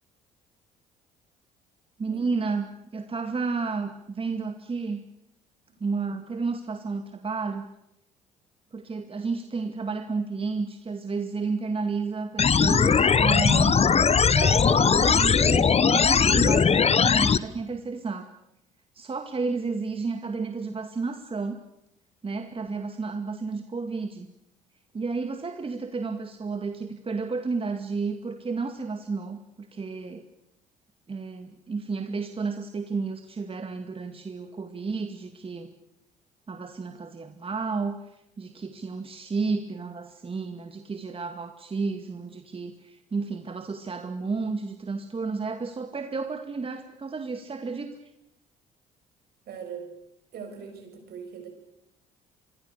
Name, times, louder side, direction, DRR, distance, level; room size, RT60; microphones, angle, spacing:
voice 1, 2.0-5.0 5.8-7.7 8.7-13.9 14.3-18.3 18.9-21.6 22.2-24.3 24.9-30.2 31.1-35.7 36.5-48.0, right 4 dB, 30° right, 6 dB, 2.2 m, -32 dB
sound 1, 12.4-17.4, left 6 dB, 35° left, 1.1 m, -20 dB
voice 2, 49.5-49.9 50.3-51.5, right 6 dB, 60° right, 5 dB, 7.2 m, -40 dB
26.5 x 23.5 x 6.7 m, 0.84 s
hypercardioid pair, 55°, 18 cm